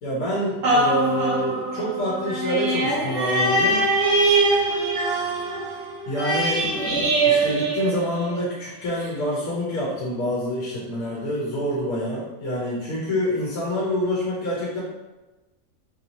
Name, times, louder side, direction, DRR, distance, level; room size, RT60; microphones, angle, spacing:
voice 1, 0.0-3.8 6.1-6.6 7.2-14.8, equal, 80° left, -6 dB, 1.3 m, -26 dB
sound 1, 0.6-8.5 9.0-9.1, right 2 dB, 85° right, 1.5 m, -23 dB
4.6 x 2.9 x 2.7 m, 1.1 s
omnidirectional pair, 1.5 m